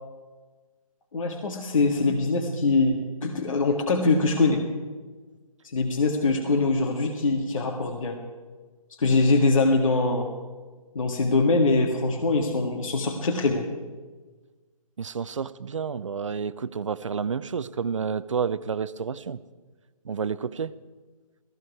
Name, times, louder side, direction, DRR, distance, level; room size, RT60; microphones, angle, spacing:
voice 1, 1.1-4.6 5.6-8.2 9.0-10.3 11.0-13.6, left 3 dB, 60° left, 1 dB, 1.8 m, -23 dB
voice 2, 15.0-19.4 20.0-20.7, right 6 dB, 55° right, 16 dB, 0.6 m, -30 dB
17.5 x 15.0 x 4.7 m, 1.4 s
hypercardioid pair, 170°, 19 cm